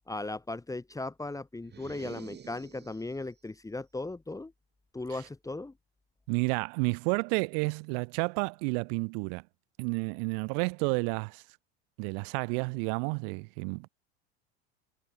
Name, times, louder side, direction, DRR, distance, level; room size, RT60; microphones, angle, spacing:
voice 1, 0.1-4.5 4.9-5.7, left 2 dB, 10° left, 2.2 m, -37 dB
sound 1, 1.6-3.3, right 7 dB, 30° right, 6.4 m, -48 dB
voice 2, 6.3-9.4 9.8-11.4 12.0-13.9, right 39 dB, 65° right, 5.8 m, -31 dB
hypercardioid pair, 85°, 33 cm